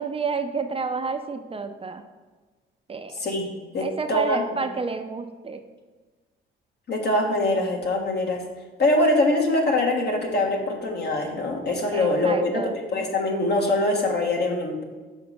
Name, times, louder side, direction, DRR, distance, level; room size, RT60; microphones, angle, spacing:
voice 1, 0.0-2.0 2.9-3.1 3.8-5.6 11.9-12.8, right 4 dB, 30° right, 7 dB, 0.5 m, -30 dB
voice 2, 3.1-3.5 3.7-4.4 6.9-8.4 8.8-12.6 12.9-14.8, left 2 dB, 55° left, 1 dB, 1.6 m, -23 dB
6.3 x 4.9 x 5.8 m, 1.3 s
cardioid pair, 90°, 20 cm